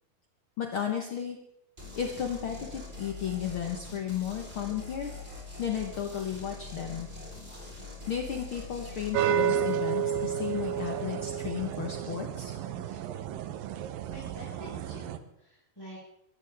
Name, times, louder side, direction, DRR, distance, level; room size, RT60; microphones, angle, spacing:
voice 1, 0.6-1.4 2.0-5.1 5.6-7.1 8.1-12.6, left 8 dB, 70° left, 2 dB, 1.2 m, -34 dB
sound 1, 1.8-9.2, left 3 dB, 15° right, 4.1 m, -43 dB
sound 2, 9.1-15.2, right 9 dB, 75° right, 2.4 m, -31 dB
voice 2, 14.1-16.0, right 1 dB, 5° left, -6 dB, 4.7 m, -47 dB
22.5 x 13.5 x 3.5 m, 0.78 s
omnidirectional pair, 4.3 m